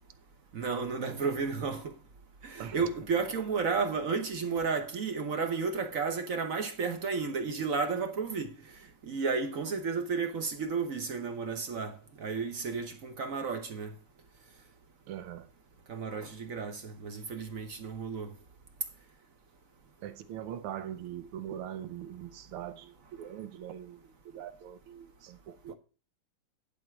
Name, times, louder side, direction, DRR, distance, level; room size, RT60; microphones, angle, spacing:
voice 1, 0.5-2.0 2.4-8.5 9.0-13.9 15.9-18.3, right 5 dB, 55° right, 1.0 m, -32 dB
voice 2, 15.1-15.5 20.0-24.1 24.3-25.7, right 10 dB, 90° right, 1.6 m, -42 dB
11.0 x 4.4 x 5.9 m
omnidirectional pair, 2.4 m